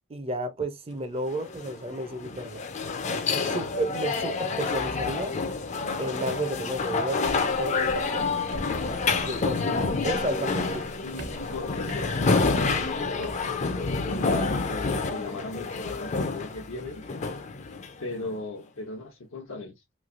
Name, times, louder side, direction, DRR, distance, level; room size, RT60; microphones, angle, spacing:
voice 1, 0.1-2.6 3.3-5.4 6.0-7.3 7.6-8.3 9.3-9.8 10.0-10.9, right 1 dB, 30° right, 0.4 m, -32 dB
sound 1, 1.3-18.3, left 4 dB, 35° left, 0.4 m, -28 dB
sound 2, 7.2-13.6, right 1 dB, 65° right, 1.1 m, -43 dB
voice 2, 9.6-9.9 11.0-13.6 14.1-17.0 18.0-19.8, left 3 dB, 85° left, 0.7 m, -38 dB
3.1 x 2.6 x 2.4 m
head